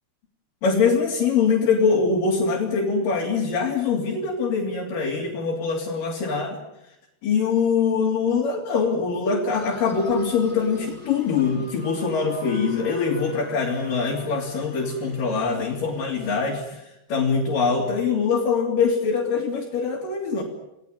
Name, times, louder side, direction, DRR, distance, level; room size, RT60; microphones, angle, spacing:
voice 1, 0.6-6.6 7.2-20.4, left 5 dB, 60° left, -1 dB, 4.7 m, -23 dB
sound 1, 9.5-16.6, left 3 dB, 25° left, 5.5 m, -44 dB
30.0 x 19.0 x 9.2 m, 0.87 s
omnidirectional pair, 4.6 m